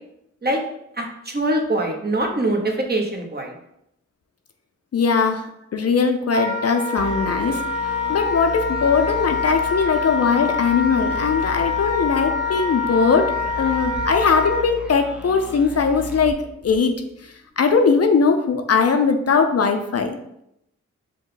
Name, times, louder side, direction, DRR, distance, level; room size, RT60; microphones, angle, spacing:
voice 1, 1.0-3.5, right 1 dB, 30° right, 2 dB, 1.0 m, -23 dB
voice 2, 4.9-5.5 5.7-16.4 16.6-16.9 17.6-20.2, left 5 dB, 55° left, 6 dB, 0.5 m, -20 dB
Wind instrument woodwind instrument, 6.3-14.6, left 5 dB, 75° right, 1.1 m, -25 dB
sound 1, 7.0-17.3, right 2 dB, 5° right, 0.7 m, -36 dB
5.1 x 2.2 x 3.9 m, 0.78 s
cardioid pair, 50°, 30 cm